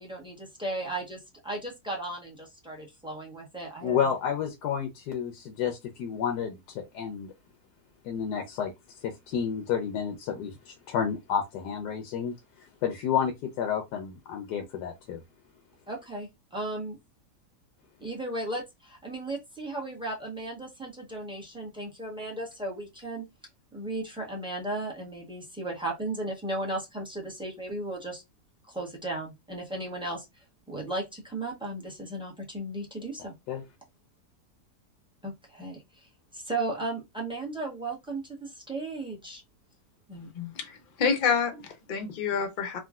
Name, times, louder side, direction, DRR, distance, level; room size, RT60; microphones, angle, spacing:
voice 1, 0.0-4.0 15.9-17.0 18.0-23.2 23.7-28.2 28.7-30.2 30.7-33.3 35.2-36.1 36.3-39.4 40.1-40.3, right 2 dB, 5° right, 0.6 m, -35 dB
voice 2, 3.8-7.3 8.0-15.2 33.5-33.6, left 8 dB, 85° left, 1.2 m, -31 dB
voice 3, 40.3-42.8, left 6 dB, 50° left, 0.6 m, -28 dB
3.6 x 2.3 x 2.3 m
omnidirectional pair, 1.7 m